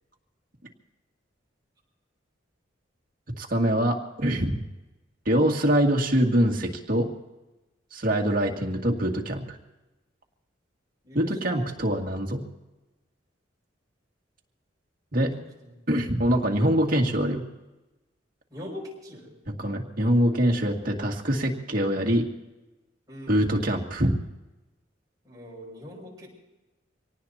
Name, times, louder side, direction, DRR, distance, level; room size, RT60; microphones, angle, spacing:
voice 1, 3.4-4.6 5.3-7.1 7.9-9.6 11.1-12.4 15.1-15.3 15.9-17.5 19.6-22.3 23.3-24.2, equal, 50° right, 0 dB, 2.1 m, -24 dB
voice 2, 11.0-11.7 15.3-15.7 18.5-19.3 23.1-23.4 25.2-26.3, left 1 dB, 20° right, -3 dB, 6.5 m, -42 dB
25.5 x 18.5 x 2.9 m, 1.0 s
head